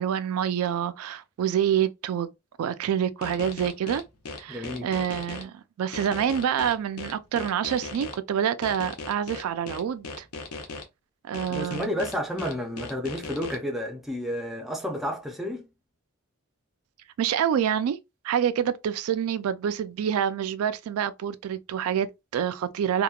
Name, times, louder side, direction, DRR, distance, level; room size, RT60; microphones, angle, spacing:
voice 1, 0.0-2.3 2.6-4.0 4.4-10.3 11.2-12.0 17.2-18.0 18.2-23.0, right 9 dB, 80° right, 0.3 m, -27 dB
sound 1, 3.2-5.4 5.9-8.1 8.6-10.8 11.3-13.6, left 3 dB, 80° left, 0.6 m, -37 dB
voice 2, 4.5-4.9 11.5-15.7, equal, ahead, 0.4 m, -31 dB
2.8 x 2.1 x 2.3 m
head